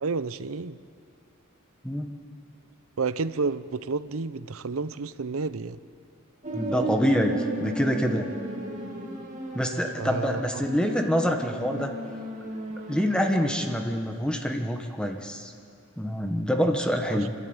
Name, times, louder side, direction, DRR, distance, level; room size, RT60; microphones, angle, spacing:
voice 1, 0.0-0.8 3.0-5.8 10.0-10.4 17.1-17.2, right 4 dB, 75° right, 15 dB, 0.7 m, -30 dB
voice 2, 1.8-2.1 6.5-8.3 9.5-11.9 12.9-15.5 16.0-17.3, equal, 5° left, 4 dB, 1.2 m, -26 dB
sound 1, 6.4-13.8, right 1 dB, 35° right, 2.2 m, -34 dB
28.0 x 12.5 x 8.9 m, 2.5 s
head